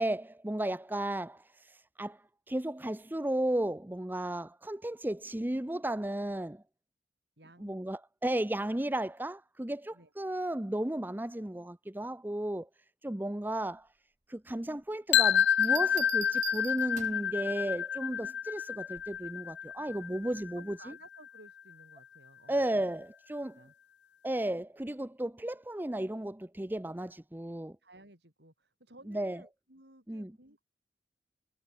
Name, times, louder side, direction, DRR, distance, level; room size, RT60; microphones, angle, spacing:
voice 1, 0.0-6.6 7.6-12.7 13.0-13.9 14.3-20.8 22.5-23.6 24.2-27.8 29.1-29.4 30.1-30.3, right 1 dB, 10° right, 0.6 m, -34 dB
voice 2, 7.4-7.8 9.9-10.1 20.6-22.9 23.5-23.7 27.8-30.6, right 2 dB, 65° right, 5.9 m, -57 dB
sound 1, 15.1-21.0, left 9 dB, 70° left, 0.5 m, -29 dB
Bell, 15.4-17.3 19.0-19.3, right 12 dB, 40° right, 1.0 m, -43 dB
head